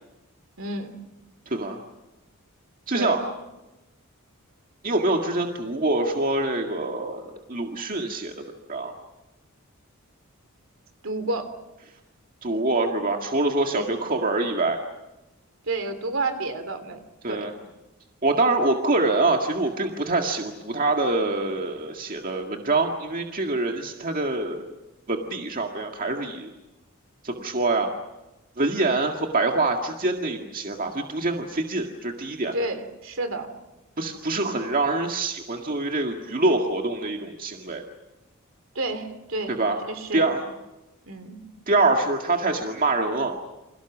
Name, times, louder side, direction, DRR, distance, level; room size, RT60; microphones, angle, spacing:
voice 1, 0.6-1.0 2.9-3.2 11.0-11.5 13.7-13.9 15.6-17.0 17.3-17.5 32.5-33.5 38.7-39.6 39.9-40.3 41.1-41.4, right 2 dB, 60° right, 9 dB, 3.2 m, -30 dB
voice 2, 1.5-1.8 2.9-3.2 4.8-8.3 8.7-8.9 12.4-14.8 17.2-17.5 18.2-24.7 25.1-26.5 27.2-27.9 28.6-32.5 34.0-37.8 39.5-39.8 40.1-40.4 41.7-43.4, right 2 dB, 40° right, 2 dB, 1.9 m, -25 dB
30.0 x 27.0 x 6.2 m, 1.0 s
head